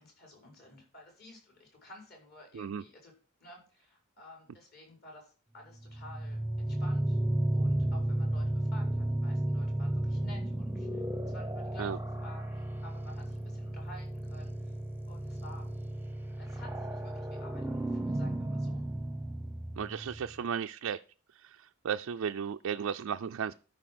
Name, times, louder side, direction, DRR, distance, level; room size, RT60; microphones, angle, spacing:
voice 1, 0.0-3.1 3.4-7.2 7.5-11.9 12.2-14.7 15.1-15.7 16.4-18.8, left 1 dB, 50° left, 0 dB, 5.1 m, -53 dB
sound 1, 5.8-20.4, right 1 dB, 10° right, 0.7 m, -33 dB
voice 2, 19.8-21.0 21.3-23.5, right 7 dB, 80° right, 7 dB, 0.4 m, -35 dB
13.0 x 5.4 x 6.0 m, 0.37 s
head